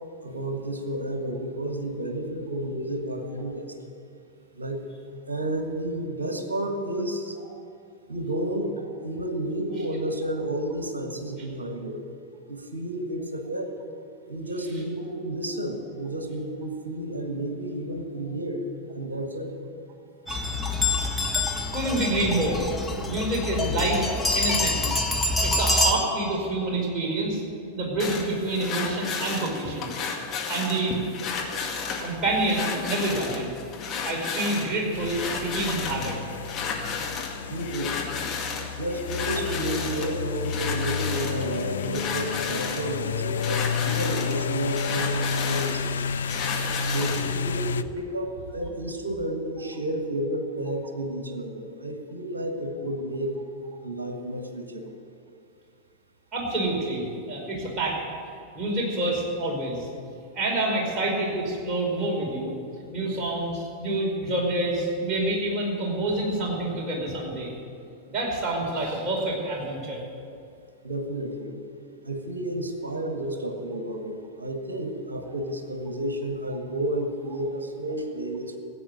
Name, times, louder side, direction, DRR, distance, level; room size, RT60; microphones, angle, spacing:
voice 1, 0.2-3.8 4.5-4.9 5.3-7.4 8.1-12.0 12.5-13.7 14.3-18.6 18.9-19.5 37.5-38.0 38.8-46.0 46.9-53.4 53.8-54.8 70.8-71.6 72.0-78.5, right 1 dB, 70° right, 5 dB, 1.6 m, -31 dB
sound 1, 20.3-25.9, left 2 dB, 10° left, 1.6 m, -26 dB
voice 2, 21.7-22.6 23.0-25.0 25.4-27.4 27.7-29.9 30.5-30.9 32.0-33.5 34.0-36.2 56.3-58.0 58.5-59.9 60.3-62.5 62.9-67.5 68.1-70.0, right 2 dB, 25° right, -3 dB, 5.1 m, -27 dB
sound 2, 28.0-47.3, left 5 dB, 30° left, 2.1 m, -33 dB
sound 3, 34.9-47.8, left 6 dB, 65° left, 0.4 m, -31 dB
15.5 x 8.6 x 9.7 m, 2.4 s
figure-of-eight pair, 90°, 0 cm